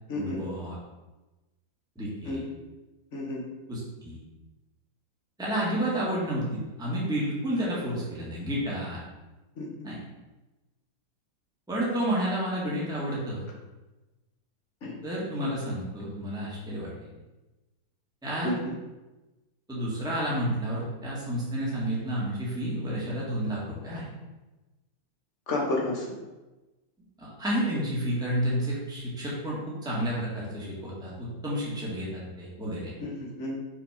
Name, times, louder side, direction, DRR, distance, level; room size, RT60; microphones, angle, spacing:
voice 1, 0.1-0.7 1.9-2.4 3.7-4.2 5.4-9.0 9.8-10.0 11.7-13.5 15.0-16.9 18.2-18.5 19.7-24.0 27.2-32.9, right 1 dB, ahead, -6 dB, 1.7 m, -30 dB
voice 2, 3.1-3.4 9.5-9.9 14.8-15.0 18.4-18.7 25.5-26.1 33.0-33.6, left 2 dB, 40° left, -2 dB, 1.6 m, -31 dB
6.2 x 4.4 x 5.1 m, 1.1 s
omnidirectional pair, 2.1 m